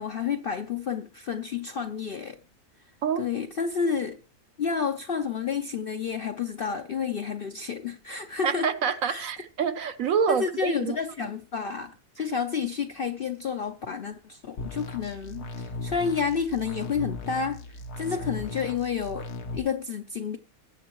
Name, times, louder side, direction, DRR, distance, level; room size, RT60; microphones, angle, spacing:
voice 1, 0.0-2.4 3.2-4.2 4.6-8.7 9.1-9.3 10.3-17.6 18.0-20.4, left 6 dB, 60° left, 0.6 m, -30 dB
voice 2, 8.4-11.0, right 7 dB, 65° right, 1.1 m, -26 dB
sound 1, 14.6-19.6, left 3 dB, 85° left, 1.6 m, -37 dB
21.0 x 8.3 x 3.0 m
omnidirectional pair, 1.6 m